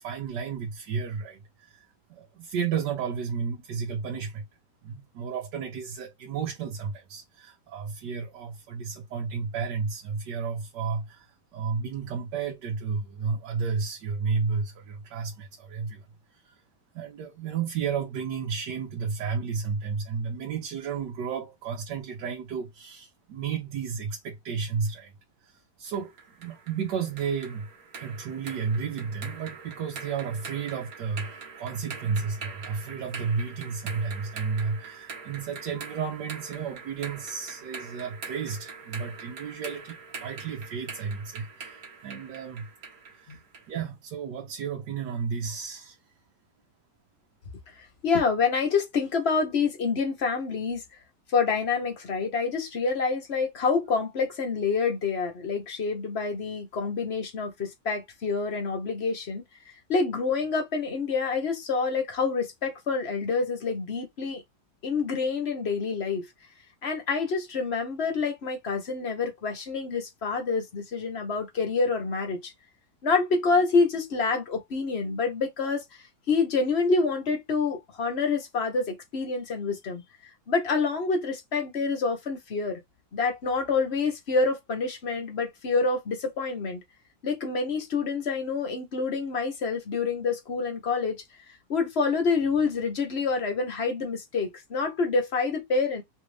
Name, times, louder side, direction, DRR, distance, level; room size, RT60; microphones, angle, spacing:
voice 1, 0.0-1.8 2.1-4.4 4.8-16.1 16.3-16.6 16.9-25.1 25.4-27.7 28.0-42.7 43.2-43.4 43.7-46.0, right 6 dB, 80° right, 1.4 m, -32 dB
sound 1, 25.9-43.7, right 5 dB, 60° right, 1.6 m, -43 dB
voice 2, 48.0-50.8 51.3-59.4 59.9-64.4 64.8-66.3 66.8-72.5 73.0-75.8 76.3-80.0 80.5-82.8 83.1-86.8 87.2-91.2 91.7-96.0, left 4 dB, 45° left, 1.0 m, -27 dB
3.4 x 2.5 x 3.2 m
omnidirectional pair, 1.8 m